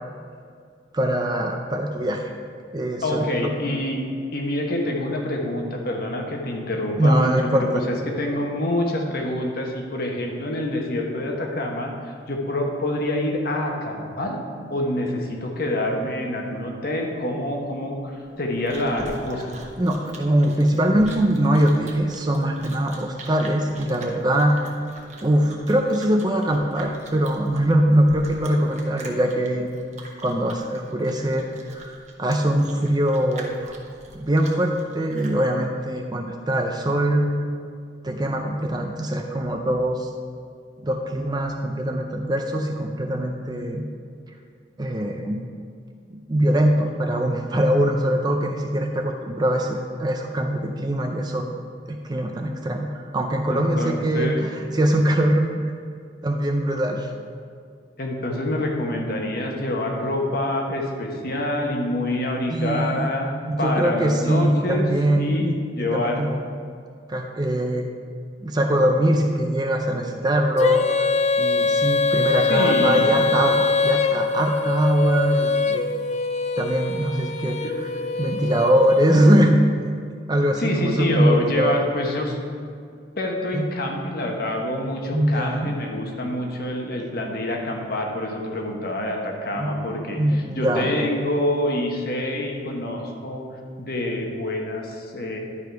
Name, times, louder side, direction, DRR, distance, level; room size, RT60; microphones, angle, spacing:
voice 1, 0.9-2.3 2.7-3.5 7.0-7.8 19.8-24.5 25.2-29.8 30.2-31.5 31.7-33.7 34.1-37.4 38.0-40.1 40.8-43.8 44.8-45.5 46.1-51.5 51.9-55.7 56.2-57.1 62.5-63.1 63.5-66.4 67.1-67.9 68.4-75.9 76.6-77.9 78.2-79.7 80.3-81.8 83.5-83.7 85.1-85.8 89.6-91.1, right 1 dB, 25° right, 3 dB, 0.5 m, -22 dB
voice 2, 3.0-4.0 4.3-14.4 14.7-19.5 53.5-54.4 58.0-63.3 63.6-64.9 65.2-66.2 72.5-73.2 77.6-77.7 80.6-82.4 83.2-93.4 93.8-95.4, left 1 dB, 55° left, 1 dB, 1.2 m, -26 dB
Chewing mastication, 18.2-35.4, right 2 dB, 40° right, 1.0 m, -43 dB
Female singing, 70.6-79.4, left 3 dB, 40° left, 0.3 m, -23 dB
11.0 x 4.9 x 4.6 m, 2.2 s
head